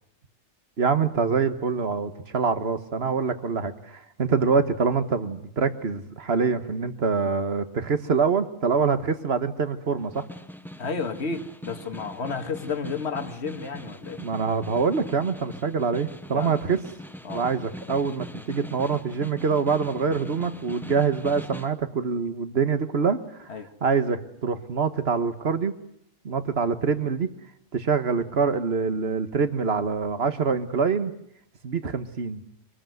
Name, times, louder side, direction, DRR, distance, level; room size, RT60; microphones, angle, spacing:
voice 1, 0.8-10.2 14.2-16.8 17.3-23.2 23.8-25.7 26.3-27.3 27.7-31.1 31.6-32.4, right 5 dB, 55° right, 11 dB, 1.7 m, -25 dB
Snare drum, 10.0-21.8, equal, ahead, 0.9 m, -41 dB
voice 2, 10.8-14.2 16.3-16.6 17.2-17.5 23.5-23.7, left 4 dB, 55° left, 7 dB, 2.0 m, -32 dB
25.0 x 19.5 x 9.4 m, 0.74 s
omnidirectional pair, 1.3 m